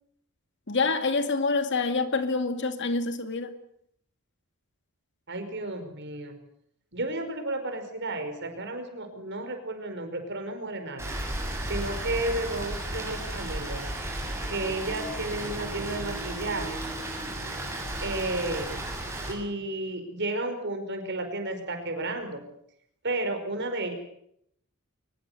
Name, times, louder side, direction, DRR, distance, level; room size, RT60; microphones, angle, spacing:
voice 1, 0.7-3.6, left 3 dB, 55° left, 2.1 m, -26 dB
voice 2, 5.3-6.4 6.9-11.2 11.6-13.9 14.5-16.9 18.0-18.8 19.3-22.4 23.0-23.9, right 2 dB, 55° right, 5.3 m, -32 dB
Rain, 11.0-19.3, right 1 dB, 15° right, 7.9 m, -34 dB
23.0 x 21.0 x 8.2 m
head